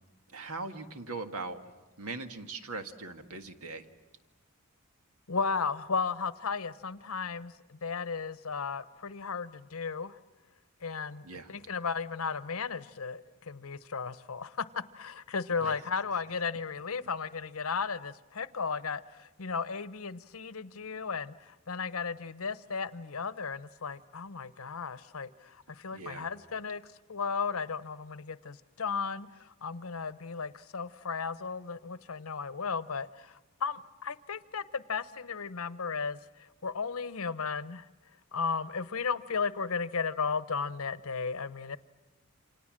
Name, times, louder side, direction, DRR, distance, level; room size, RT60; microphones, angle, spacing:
voice 1, 0.3-1.6 2.0-3.9 11.2-11.5 15.6-15.8 25.9-26.3, right 3 dB, 90° right, 7 dB, 1.7 m, -40 dB
voice 2, 5.3-10.2 10.8-26.8 27.1-36.2 36.6-37.9 38.3-41.8, left 5 dB, 75° left, 15 dB, 0.9 m, -35 dB
29.0 x 26.0 x 7.5 m, 1.1 s
head